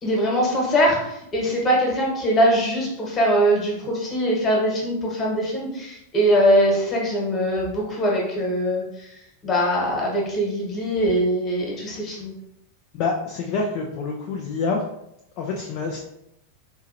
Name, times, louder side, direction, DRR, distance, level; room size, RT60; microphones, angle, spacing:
voice 1, 0.0-12.3, equal, 25° left, -2 dB, 1.3 m, -22 dB
voice 2, 12.9-14.8 15.4-16.0, left 4 dB, 45° left, 1 dB, 0.5 m, -26 dB
4.5 x 2.7 x 2.7 m, 0.82 s
figure-of-eight pair, 90°, 0 cm